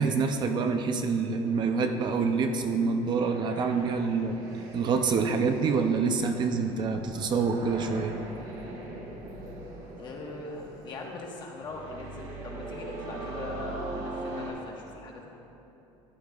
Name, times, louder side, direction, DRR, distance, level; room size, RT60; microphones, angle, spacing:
voice 1, 0.0-4.4 4.7-8.1, right 5 dB, 40° right, 5 dB, 0.5 m, -26 dB
sound 1, 1.4-14.5, right 2 dB, 85° right, 2.3 m, -41 dB
voice 2, 10.0-15.3, left 3 dB, 40° left, -1 dB, 1.3 m, -41 dB
14.0 x 9.4 x 2.4 m, 2.9 s
cardioid pair, 155°, 12 cm